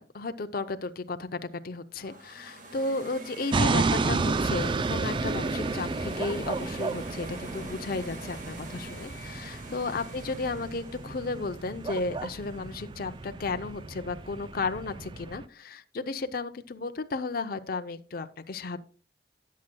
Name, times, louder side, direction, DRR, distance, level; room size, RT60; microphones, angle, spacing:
voice 1, 0.0-18.8, left 3 dB, 55° left, 9 dB, 0.6 m, -34 dB
sound 1, 2.0-13.0, right 2 dB, 45° right, 1.6 m, -45 dB
sound 2, 3.5-15.4, right 3 dB, 25° right, 0.4 m, -32 dB
18.0 x 7.5 x 2.2 m, 0.38 s
head